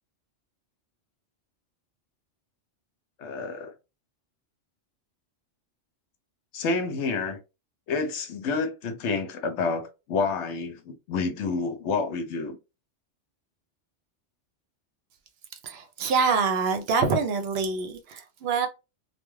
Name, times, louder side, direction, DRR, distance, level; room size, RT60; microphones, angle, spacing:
voice 1, 3.2-3.7 6.5-7.4 7.9-12.6, left 4 dB, 75° left, 0.9 m, -29 dB
voice 2, 15.6-18.7, right 5 dB, 65° right, 0.8 m, -25 dB
2.3 x 2.2 x 3.0 m
omnidirectional pair, 1.2 m